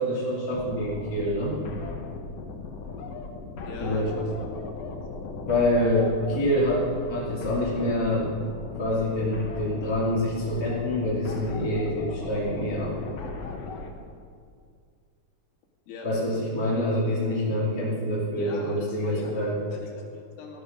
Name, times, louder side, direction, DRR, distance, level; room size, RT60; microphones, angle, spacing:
voice 1, 0.0-1.6 3.8-4.1 5.4-8.3 8.8-12.9 16.0-19.6, left 1 dB, 25° left, -7 dB, 2.8 m, -26 dB
sound 1, 0.5-13.9, left 4 dB, 55° left, 2.0 m, -37 dB
voice 2, 3.7-4.6 15.9-16.1 18.4-19.3 19.7-20.6, left 4 dB, 85° left, 1 dB, 3.9 m, -40 dB
18.5 x 13.5 x 5.3 m, 2.2 s
omnidirectional pair, 4.1 m